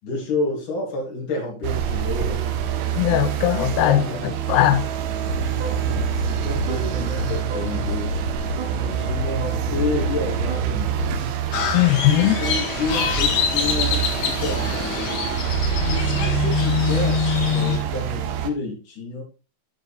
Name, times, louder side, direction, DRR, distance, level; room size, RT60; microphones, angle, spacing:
voice 1, 0.0-3.2 3.8-4.3 6.1-8.2 8.8-11.4 12.0-15.3 15.8-19.2, left 3 dB, 45° left, 4.7 m, -30 dB
sound 1, 1.6-18.5, right 10 dB, 80° right, 3.2 m, -26 dB
voice 2, 3.0-4.0 4.5-4.8 11.7-12.4, left 13 dB, 90° left, 2.4 m, -18 dB
sound 2, 5.2-11.3, equal, 45° right, 3.8 m, -29 dB
Crow, 11.5-17.8, left 6 dB, 75° left, 4.0 m, -24 dB
11.5 x 6.6 x 3.6 m
omnidirectional pair, 5.6 m